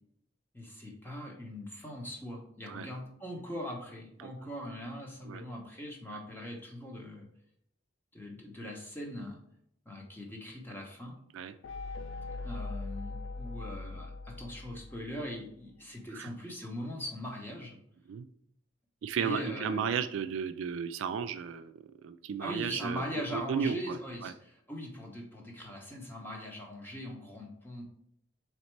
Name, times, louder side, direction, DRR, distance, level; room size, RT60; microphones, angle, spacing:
voice 1, 0.5-7.3 8.1-9.4 9.9-11.2 12.3-17.8 19.2-19.9 22.4-27.8, equal, 10° left, -1 dB, 0.8 m, -41 dB
sound 1, 11.6-15.4, left 3 dB, 65° left, 0.3 m, -41 dB
voice 2, 19.0-21.7 22.0-24.0 24.2-24.3, right 7 dB, 70° right, 10 dB, 0.3 m, -34 dB
4.1 x 3.2 x 3.2 m, 0.72 s
head